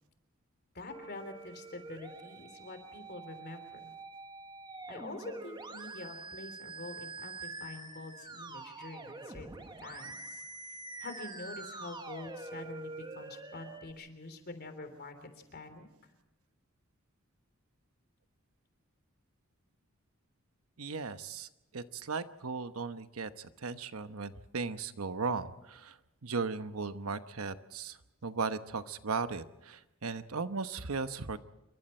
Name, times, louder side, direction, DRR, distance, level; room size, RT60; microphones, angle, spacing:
voice 1, 0.7-3.9 4.9-9.5 9.8-10.4 11.0-15.9, left 2 dB, 50° left, 8 dB, 3.3 m, -46 dB
Musical instrument, 0.9-13.9, right 3 dB, 20° right, 1.3 m, -46 dB
voice 2, 20.8-31.4, right 4 dB, 80° right, 11 dB, 1.0 m, -37 dB
27.5 x 23.0 x 4.4 m, 0.94 s
head